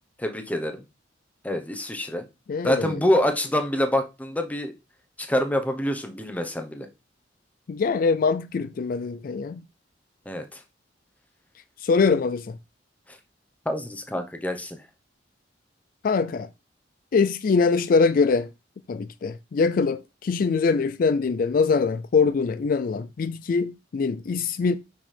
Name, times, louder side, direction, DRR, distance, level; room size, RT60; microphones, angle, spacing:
voice 1, 0.2-0.8 1.4-2.2 2.6-4.7 5.2-6.9 10.3-10.6 13.6-14.8, left 1 dB, 10° left, 0.9 m, -26 dB
voice 2, 2.5-3.0 7.7-9.6 11.8-12.6 16.0-16.5 17.1-18.5 18.9-24.7, left 4 dB, 50° left, 0.3 m, -23 dB
6.2 x 6.2 x 3.3 m
head